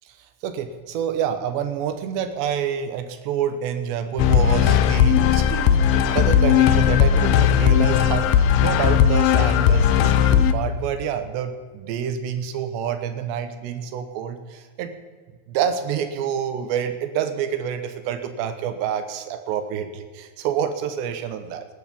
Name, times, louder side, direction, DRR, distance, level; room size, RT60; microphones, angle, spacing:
voice 1, 0.4-15.0 15.5-21.7, right 8 dB, 85° right, 9 dB, 3.3 m, -27 dB
sound 1, 4.2-10.5, left 9 dB, 75° left, 2.4 m, -17 dB
20.0 x 11.5 x 5.2 m, 1.5 s
omnidirectional pair, 4.9 m